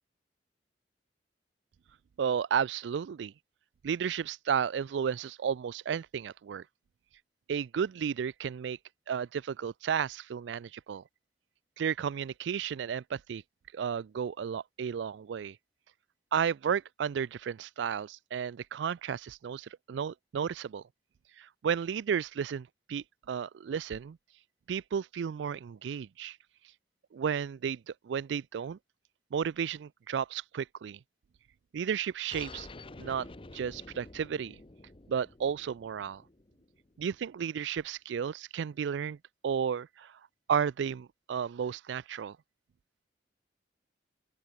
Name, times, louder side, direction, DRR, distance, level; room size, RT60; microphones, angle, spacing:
voice 1, 2.2-3.3 3.8-6.6 7.5-8.8 9.1-11.0 11.8-13.4 13.7-15.6 16.3-20.8 21.4-24.2 24.7-26.4 27.1-28.8 29.3-31.0 31.7-32.7 33.0-33.3 33.5-34.6 35.1-36.2 37.0-39.2 39.4-40.2 40.5-42.4, right 7 dB, 80° right, 0.3 m, -33 dB
sound 1, 32.3-37.4, left 2 dB, 30° left, 1.0 m, -49 dB
open air
head